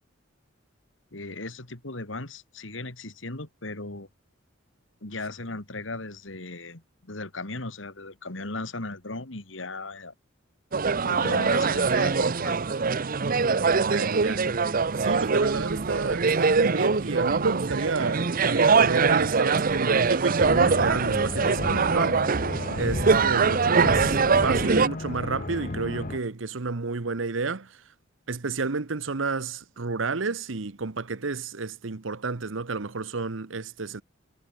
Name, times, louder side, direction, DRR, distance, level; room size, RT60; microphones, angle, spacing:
voice 1, 1.1-4.1 5.0-10.1 11.0-12.6, left 2 dB, 75° left, 2.8 m, -37 dB
sound 1, 10.7-24.9, right 4 dB, 45° right, 0.7 m, -23 dB
voice 2, 13.8-14.5 15.0-22.2 22.8-27.8 28.3-34.0, right 4 dB, 80° right, 1.0 m, -30 dB
sound 2, 20.4-26.2, left 2 dB, 45° left, 1.0 m, -33 dB
head